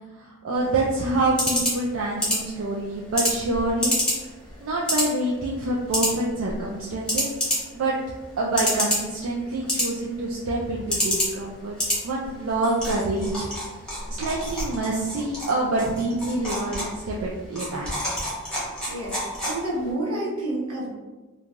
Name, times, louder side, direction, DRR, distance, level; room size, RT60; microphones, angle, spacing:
voice 1, 0.2-4.0 4.6-7.3 7.7-7.9 8.4-11.8 12.0-13.5 14.2-18.0, right 2 dB, 70° right, -4 dB, 0.4 m, -26 dB
sound 1, 0.5-19.9, equal, 5° left, 1.0 m, -30 dB
voice 2, 18.5-19.2 19.4-20.9, right 1 dB, 90° right, -6 dB, 1.0 m, -29 dB
3.1 x 2.3 x 2.5 m, 1.2 s
head